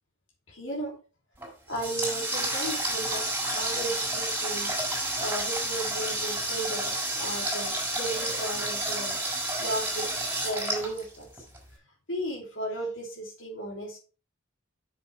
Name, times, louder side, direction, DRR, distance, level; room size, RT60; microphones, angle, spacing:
voice 1, 0.5-1.0 1.7-9.2 9.6-10.1 10.4-11.3 12.1-14.0, right 1 dB, 65° left, -2 dB, 3.3 m, -35 dB
Water tap faucet, 1.4-11.6, right 1 dB, 10° right, 4.5 m, -30 dB
7.4 x 7.0 x 4.6 m, 0.34 s
head